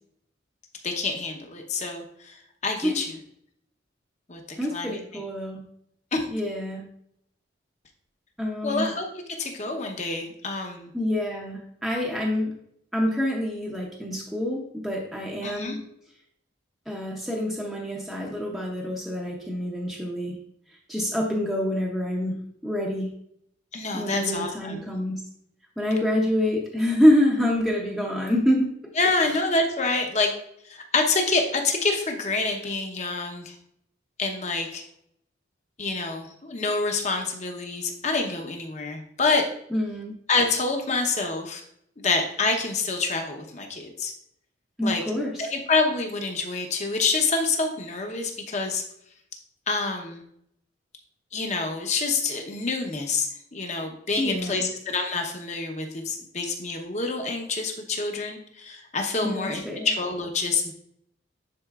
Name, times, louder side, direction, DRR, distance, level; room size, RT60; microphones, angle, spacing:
voice 1, 0.8-2.3 2.6-3.1 4.3-4.4 4.7-5.0 6.1-6.2 8.6-9.1 9.4-10.9 15.4-15.8 23.7-24.8 29.0-30.3 30.7-33.5 34.2-34.8 35.8-39.4 40.3-41.6 42.0-44.1 44.8-45.0 45.4-48.8 49.7-50.2 51.3-60.7, left 3 dB, 40° left, 3 dB, 0.9 m, -27 dB
voice 2, 4.6-5.6 6.3-6.9 8.4-8.9 10.9-12.6 12.9-15.8 16.9-20.4 20.9-23.1 23.9-25.2 25.8-28.8 29.3-29.4 39.7-40.1 44.8-45.5 54.2-54.7 59.2-59.9, left 1 dB, ahead, -3 dB, 0.7 m, -26 dB
9.7 x 4.3 x 2.4 m, 0.72 s
head